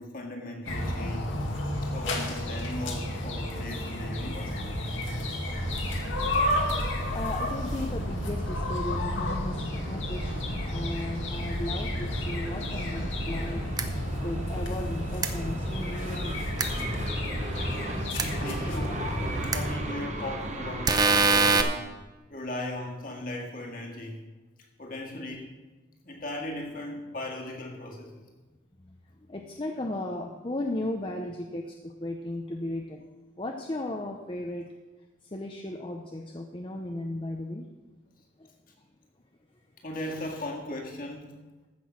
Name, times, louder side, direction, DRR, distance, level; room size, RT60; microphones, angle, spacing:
voice 1, 0.0-1.5 1.9-4.6 18.2-19.2 19.4-21.9 22.3-24.2 24.8-25.5 26.0-28.3 39.8-41.4, left 1 dB, 45° left, 1 dB, 1.9 m, -37 dB
sound 1, 0.7-19.8, left 1 dB, 75° left, 1.9 m, -32 dB
sound 2, 5.5-21.6, right 1 dB, 35° right, 1.1 m, -36 dB
voice 2, 7.1-13.6 14.2-16.7 28.8-33.0 33.4-34.6 35.3-37.7 38.4-38.5, left 1 dB, 25° left, 2 dB, 0.6 m, -36 dB
sound 3, 13.8-13.9 15.2-15.3 16.6-16.7 18.2-18.3 19.5-19.6 20.9-21.6, right 4 dB, 20° right, 0.6 m, -22 dB
14.5 x 6.1 x 6.1 m, 1.3 s
head